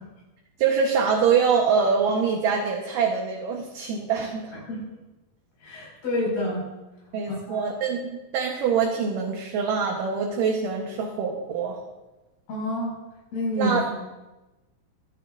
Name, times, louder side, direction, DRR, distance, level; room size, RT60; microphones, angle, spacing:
voice 1, 0.6-4.5 7.1-11.8 13.6-13.9, right 6 dB, 65° right, 1 dB, 2.5 m, -24 dB
voice 2, 5.6-6.7 7.3-7.6 12.5-12.9 13.3-13.9, left 1 dB, 85° left, -4 dB, 8.0 m, -28 dB
25.0 x 11.0 x 2.6 m, 1.1 s
omnidirectional pair, 4.6 m